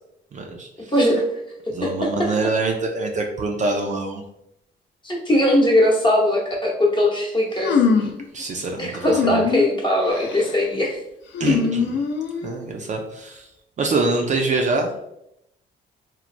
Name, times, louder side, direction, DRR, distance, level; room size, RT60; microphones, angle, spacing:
voice 1, 0.3-0.9 1.7-4.2 8.3-9.5 11.4-12.0 12.4-13.5 13.8-14.9, right 3 dB, 40° right, 2 dB, 0.4 m, -25 dB
voice 2, 0.9-1.2 1.7-2.3 5.0-8.1 8.8-11.0, left 1 dB, 25° left, -2 dB, 0.8 m, -20 dB
sound 1, 7.6-8.2 9.0-9.7 10.1-10.5 11.3-12.5, left 5 dB, 65° left, 0.4 m, -22 dB
3.0 x 2.0 x 2.4 m, 0.81 s
cardioid pair, 90°, 20 cm